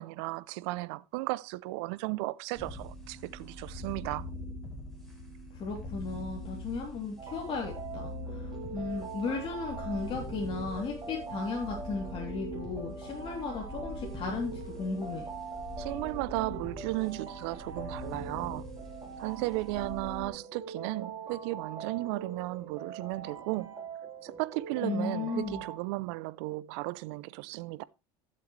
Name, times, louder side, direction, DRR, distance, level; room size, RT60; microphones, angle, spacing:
voice 1, 0.0-4.3 15.8-18.6 19.2-23.7 24.2-27.8, right 21 dB, 80° right, 0.6 m, -35 dB
sound 1, 2.6-20.3, equal, ahead, 6.0 m, -43 dB
voice 2, 5.5-15.2 24.8-25.6, left 4 dB, 40° left, 3.2 m, -35 dB
sound 2, 7.2-25.8, right 6 dB, 25° right, 4.0 m, -43 dB
15.0 x 7.7 x 3.2 m
supercardioid pair, 110°, 14 cm